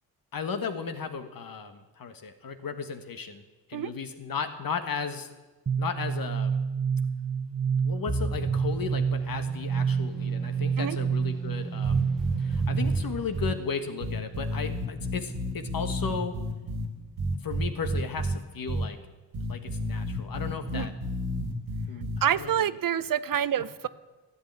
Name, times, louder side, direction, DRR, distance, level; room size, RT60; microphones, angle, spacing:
voice 1, 0.3-3.4 3.7-5.3 5.8-6.6 7.8-12.1 12.4-16.4 17.4-19.0 19.5-20.9 21.9-22.5 23.3-23.4, left 5 dB, 65° left, 8 dB, 1.5 m, -35 dB
sound 1, 5.7-13.2, right 6 dB, 35° right, 1.2 m, -28 dB
sound 2, 8.1-14.0, equal, ahead, 1.5 m, -38 dB
sound 3, 11.8-13.0 13.3-13.5 14.0-16.9 17.2-18.4 18.7-18.8 19.3-22.2, right 1 dB, 85° right, 2.1 m, -30 dB
voice 2, 22.2-23.9, right 10 dB, 60° right, 16 dB, 0.6 m, -27 dB
12.5 x 8.5 x 8.6 m, 1.2 s
cardioid pair, 55°, 38 cm